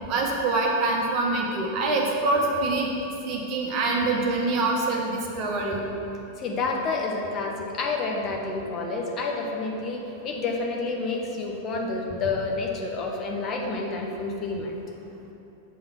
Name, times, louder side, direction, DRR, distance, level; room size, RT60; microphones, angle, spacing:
voice 1, 0.1-2.9 3.3-5.8, right 2 dB, 40° right, -1 dB, 1.0 m, -25 dB
voice 2, 6.4-14.8, left 3 dB, 30° left, 0 dB, 0.9 m, -29 dB
7.3 x 3.8 x 5.9 m, 2.8 s
figure-of-eight pair, 90°, 0 cm